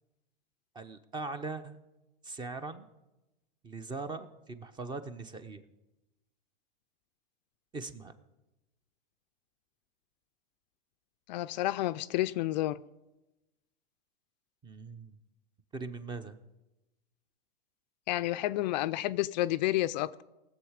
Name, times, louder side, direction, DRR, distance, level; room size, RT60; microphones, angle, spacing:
voice 1, 0.7-1.8 2.2-2.9 3.6-5.6 7.7-8.1 14.6-15.2 15.7-16.4, right 3 dB, 15° right, 0.6 m, -40 dB
voice 2, 11.3-12.8 18.1-20.2, left 16 dB, 50° left, 0.4 m, -30 dB
19.0 x 7.3 x 4.9 m
hypercardioid pair, 130°, 29 cm